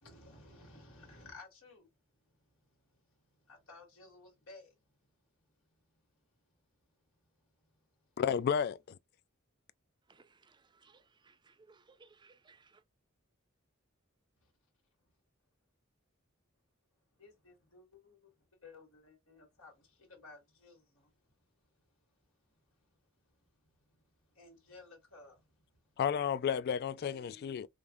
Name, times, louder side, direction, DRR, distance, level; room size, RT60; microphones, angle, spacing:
voice 1, 0.0-1.9 2.3-2.8 3.1-4.8 14.4-14.5 17.2-18.3 18.6-21.3 22.5-22.9 24.3-25.6 27.0-27.6, left 3 dB, 85° left, 1.7 m, -56 dB
voice 2, 8.2-9.0 26.0-27.7, left 7 dB, 50° left, 0.3 m, -32 dB
voice 3, 10.1-12.8, right 4 dB, 20° right, 0.5 m, -63 dB
5.1 x 2.4 x 2.4 m
head